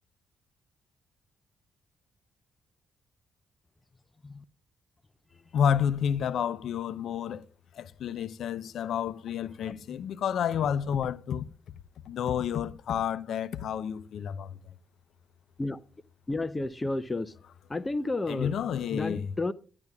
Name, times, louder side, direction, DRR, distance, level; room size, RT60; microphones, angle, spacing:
voice 1, 5.5-7.4 7.7-11.5 12.1-14.6 18.3-19.2, left 8 dB, 65° left, 0.6 m, -30 dB
voice 2, 16.3-17.4 17.7-18.5 18.9-19.5, left 2 dB, 20° left, 0.6 m, -32 dB
10.5 x 10.5 x 2.3 m
cardioid pair, 90°, 0 cm